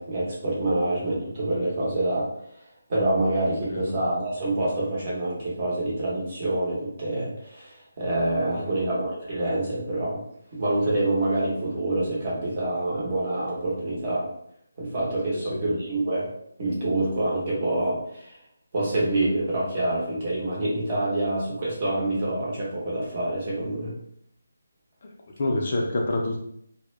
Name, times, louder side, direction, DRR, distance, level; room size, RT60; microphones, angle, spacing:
voice 1, 0.0-2.3 2.9-10.2 10.5-14.3 14.8-16.3 16.6-18.3 18.7-23.9, right 1 dB, 30° right, -6 dB, 0.9 m, -26 dB
voice 2, 15.3-15.6 25.4-26.4, left 2 dB, 40° left, 0 dB, 0.4 m, -27 dB
2.0 x 2.0 x 3.1 m, 0.70 s
hypercardioid pair, 170°, 0 cm